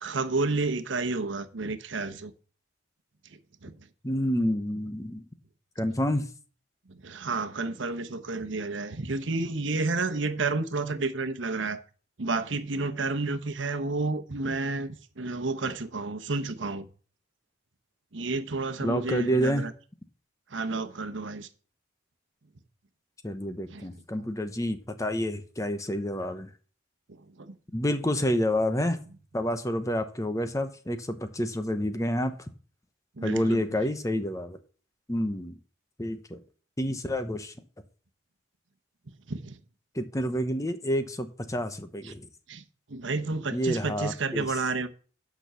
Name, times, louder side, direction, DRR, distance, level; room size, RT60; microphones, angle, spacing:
voice 1, 0.0-2.3 3.3-3.8 6.9-11.8 12.2-16.9 18.1-19.7 20.5-21.5 23.7-23.9 24.2-24.3 27.1-27.6 33.2-33.6 39.3-39.6 42.0-42.1 42.5-42.6 42.9-44.9, right 3 dB, 75° right, 1.0 m, -31 dB
voice 2, 4.0-5.2 5.8-6.2 18.8-19.6 23.2-26.5 27.7-29.0 29.3-32.3 33.2-34.6 35.1-35.5 36.0-36.4 36.8-37.5 39.9-42.3 43.5-44.5, equal, 15° left, 0.9 m, -28 dB
9.0 x 6.2 x 6.8 m
head